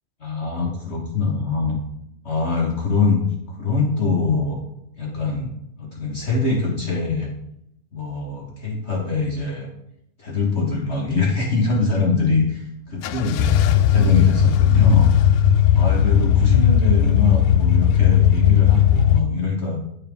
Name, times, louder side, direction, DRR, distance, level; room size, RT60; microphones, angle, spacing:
voice 1, 0.2-1.8 2.2-3.2 3.5-4.6 5.0-5.5 5.8-7.3 7.9-9.7 10.2-15.1 15.7-19.8, left 4 dB, 55° left, -3 dB, 0.7 m, -23 dB
sound 1, 13.0-19.2, left 9 dB, 85° left, 2.0 m, -16 dB
10.0 x 5.6 x 3.5 m, 0.77 s
omnidirectional pair, 3.3 m